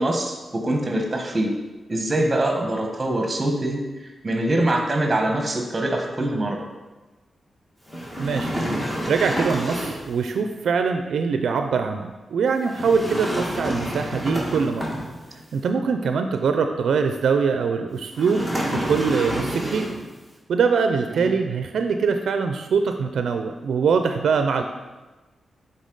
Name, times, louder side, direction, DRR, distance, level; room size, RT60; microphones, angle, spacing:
voice 1, 0.0-1.5 1.9-6.7 21.1-21.3, right 1 dB, 30° right, 2 dB, 1.1 m, -24 dB
sound 1, 7.9-10.1 12.7-15.4 18.1-20.1, equal, 15° left, 1.5 m, -28 dB
voice 2, 8.2-8.5 9.1-14.8 15.5-18.5 18.8-19.9 20.5-24.6, right 5 dB, 85° right, 6 dB, 0.4 m, -23 dB
7.3 x 3.9 x 3.9 m, 1.2 s
cardioid pair, 90°, 0 cm